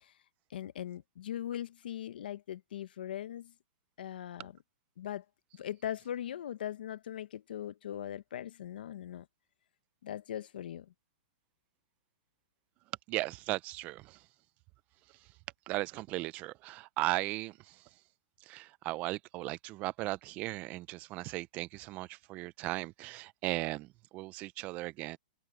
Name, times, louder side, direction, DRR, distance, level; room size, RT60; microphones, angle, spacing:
voice 1, 0.5-3.5 4.0-4.6 5.0-5.2 5.6-9.3 10.0-10.9, left 11 dB, 75° left, 1.1 m, -40 dB
voice 2, 13.1-14.2 15.7-17.5 18.5-25.2, right 19 dB, 30° right, 0.7 m, -37 dB
hypercardioid pair, 155°, 5 cm